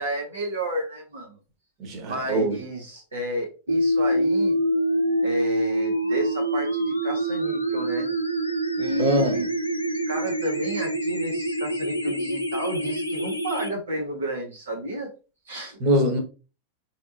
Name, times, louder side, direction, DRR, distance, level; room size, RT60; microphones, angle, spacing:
voice 1, 0.0-1.4 2.0-4.6 5.2-8.1 8.8-9.5 10.1-15.1 15.5-15.8, right 1 dB, 70° right, 0.8 m, -31 dB
voice 2, 1.8-2.6 9.0-9.3 15.8-16.2, right 1 dB, 35° right, 1.2 m, -22 dB
sound 1, 3.7-13.7, right 1 dB, 85° left, 0.5 m, -25 dB
4.3 x 2.9 x 2.6 m
figure-of-eight pair, 90°, 0 cm